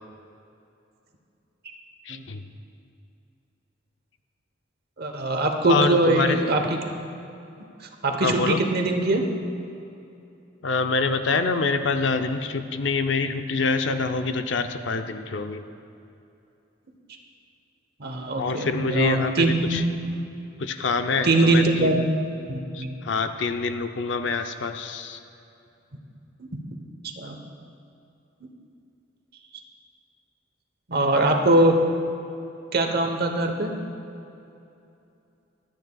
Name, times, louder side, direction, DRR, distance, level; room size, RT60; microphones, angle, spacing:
voice 1, 2.1-2.4 5.7-6.4 8.2-8.6 10.6-15.6 18.4-19.9 20.6-22.1 22.7-25.2, left 4 dB, 70° left, 8 dB, 0.6 m, -26 dB
voice 2, 5.0-6.8 8.0-9.2 18.0-19.8 21.2-22.0 22.5-22.9 27.2-27.4 30.9-31.8 32.7-33.7, right 2 dB, 55° right, 4 dB, 1.0 m, -22 dB
24.0 x 9.2 x 2.3 m, 2.7 s
head